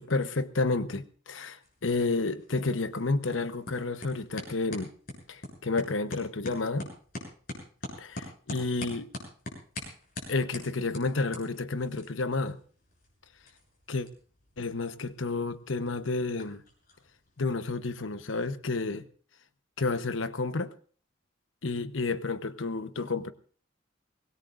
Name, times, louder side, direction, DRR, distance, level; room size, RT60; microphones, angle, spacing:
voice 1, 0.0-4.9 5.3-6.9 8.0-9.1 10.3-12.6 13.9-14.1 14.6-16.6 17.4-19.1 19.8-20.7 21.6-23.3, left 3 dB, 85° left, 1.0 m, -30 dB
sound 1, 1.6-17.5, left 1 dB, 50° left, 7.2 m, -45 dB
24.5 x 18.5 x 2.6 m
head